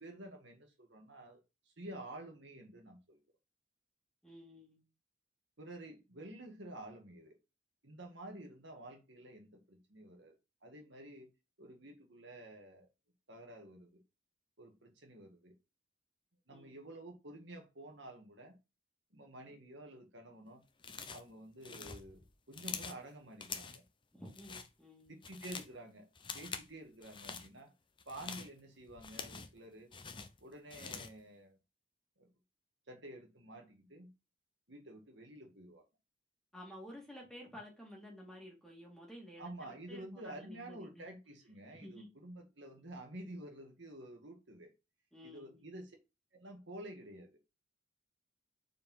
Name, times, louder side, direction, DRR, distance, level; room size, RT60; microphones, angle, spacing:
voice 1, 0.0-1.4 1.7-3.2 5.6-7.3 7.8-10.4 10.6-11.3 11.6-12.9 13.3-14.0 14.6-15.5 16.5-18.5 19.1-20.6 21.1-23.8 25.1-26.1 26.3-27.7 28.1-29.9 30.4-31.6 32.2-32.3 32.9-34.1 34.7-35.8 39.4-44.7 45.2-46.0 46.3-47.3, right 1 dB, 60° right, 1.8 m, -50 dB
voice 2, 4.2-4.8 16.5-16.8 24.1-25.2 36.5-41.1 41.7-42.1 45.1-45.6, equal, ahead, 2.5 m, -52 dB
sound 1, 20.8-21.3 21.6-23.0 23.4-23.9 24.2-24.7 25.1-25.7 26.1-26.7 27.0-27.5 28.0-29.6 29.9-31.2, left 5 dB, 25° left, 0.6 m, -46 dB
5.0 x 4.7 x 5.5 m
head